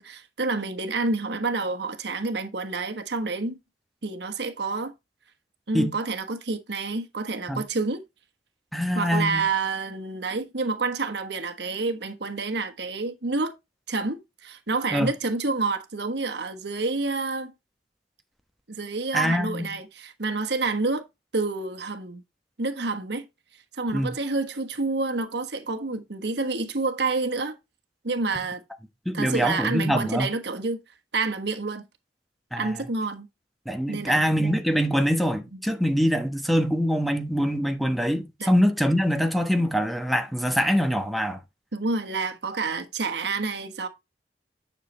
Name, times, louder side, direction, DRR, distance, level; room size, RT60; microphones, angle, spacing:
voice 1, 0.0-3.6 4.0-4.9 5.7-8.0 8.9-13.5 13.9-17.5 18.7-21.0 21.3-22.2 22.6-23.2 23.7-27.6 28.0-28.6 29.1-30.8 31.1-31.8 32.6-33.3 33.9-34.3 35.5-35.6 38.4-38.5 41.7-43.9, right 3 dB, 70° right, 1.3 m, -28 dB
voice 2, 8.7-9.4 14.9-15.1 19.1-19.7 23.9-24.1 29.1-30.3 32.5-32.7 33.7-41.4, equal, ahead, 1.0 m, -24 dB
10.0 x 6.6 x 3.3 m
head